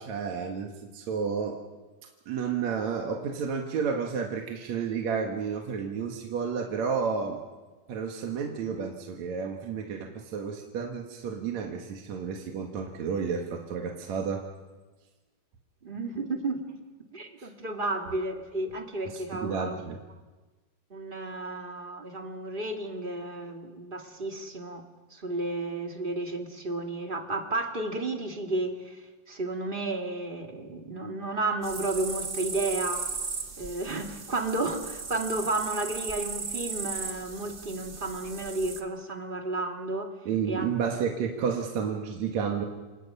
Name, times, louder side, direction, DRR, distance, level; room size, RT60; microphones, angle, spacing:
voice 1, 0.0-1.6 2.3-7.4 7.9-14.4 17.4-17.5 19.0-20.0 40.3-42.6, right 6 dB, 55° right, 1 dB, 2.7 m, -31 dB
voice 2, 15.8-16.7 17.1-19.8 20.9-24.8 25.1-33.1 33.6-40.1 40.4-40.7, right 2 dB, 20° right, 3 dB, 1.4 m, -32 dB
sound 1, 31.6-38.8, right 4 dB, 75° right, 0.6 m, -36 dB
29.5 x 25.5 x 5.6 m, 1.3 s
omnidirectional pair, 4.0 m